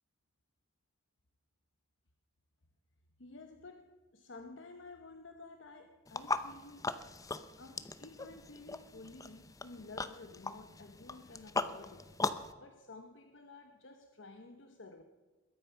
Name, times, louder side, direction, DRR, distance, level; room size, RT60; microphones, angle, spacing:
voice 1, 3.2-7.1 7.6-12.2 12.6-15.0, left 3 dB, 65° left, 6 dB, 1.0 m, -52 dB
sound 1, 6.1-12.5, left 3 dB, 15° left, 0.6 m, -39 dB
21.5 x 9.0 x 5.8 m, 1.3 s
head